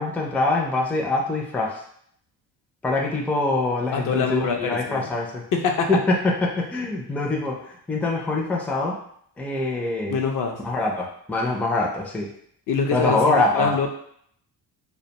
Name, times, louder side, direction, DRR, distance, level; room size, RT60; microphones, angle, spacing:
voice 1, 0.0-1.8 2.8-5.4 5.9-9.0 9.4-10.2 10.6-12.3 12.9-13.9, left 2 dB, 5° left, -1 dB, 0.4 m, -24 dB
voice 2, 3.9-5.2 5.5-5.9 10.1-10.6 12.7-13.9, left 5 dB, 55° left, 3 dB, 0.5 m, -25 dB
2.4 x 2.2 x 2.8 m, 0.66 s
cardioid pair, 80°, 38 cm